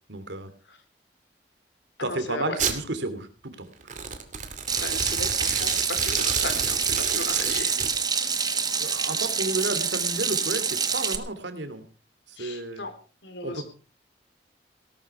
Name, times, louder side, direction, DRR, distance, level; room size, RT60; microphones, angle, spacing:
voice 1, 0.1-0.5 2.0-3.7 8.8-11.9 12.3-12.8 13.4-13.7, right 2 dB, 80° right, 10 dB, 2.8 m, -32 dB
voice 2, 2.0-2.6 4.8-7.8 8.8-9.0 12.4-12.9 13.2-13.6, left 2 dB, 85° left, 7 dB, 4.0 m, -36 dB
Domestic sounds home sounds, 2.6-2.8 3.8-7.9, right 7 dB, 45° right, 2.5 m, -30 dB
Water tap faucet / Sink (filling or washing), 4.7-11.2, right 6 dB, 20° right, 1.4 m, -26 dB
18.0 x 13.0 x 4.8 m, 0.37 s
head